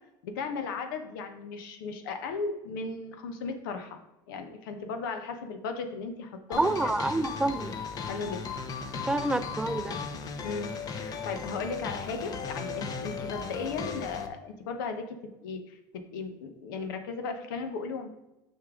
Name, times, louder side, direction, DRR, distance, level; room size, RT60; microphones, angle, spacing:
voice 1, 0.2-4.0 4.3-6.7 8.0-8.5 10.4-15.2 15.4-18.1, left 4 dB, 85° left, 7 dB, 1.0 m, -36 dB
sound 1, 6.5-14.3, left 5 dB, 35° left, 0.8 m, -36 dB
voice 2, 6.6-7.8 9.1-10.0, right 2 dB, 10° right, 11 dB, 0.3 m, -28 dB
6.7 x 5.4 x 3.7 m, 0.97 s
supercardioid pair, 110°, 11 cm